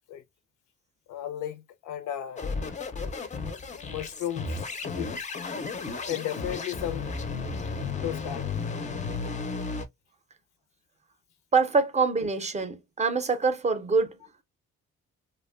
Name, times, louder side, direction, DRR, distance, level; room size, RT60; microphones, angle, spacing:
voice 1, 1.1-2.8 3.9-4.6 4.9-5.2 6.1-7.1 8.0-8.5, left 11 dB, 85° left, 0.5 m, -34 dB
sound 1, 2.4-9.9, left 4 dB, 25° left, 0.4 m, -33 dB
voice 2, 11.5-14.2, right 4 dB, 25° right, 0.5 m, -25 dB
2.5 x 2.1 x 2.3 m
cardioid pair, 90°, 30 cm